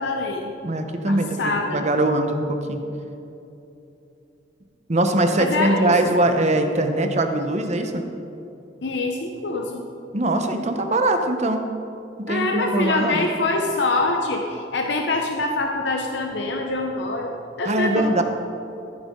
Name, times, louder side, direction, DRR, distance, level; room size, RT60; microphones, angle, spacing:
voice 1, 0.0-0.5 1.1-1.8 5.4-5.9 8.8-9.9 12.3-18.2, left 2 dB, 75° left, 2 dB, 0.8 m, -25 dB
voice 2, 0.6-2.9 4.9-8.0 10.1-11.7 12.2-13.3 17.6-18.2, right 1 dB, 40° right, 6 dB, 0.9 m, -22 dB
14.0 x 9.3 x 3.7 m, 2.8 s
head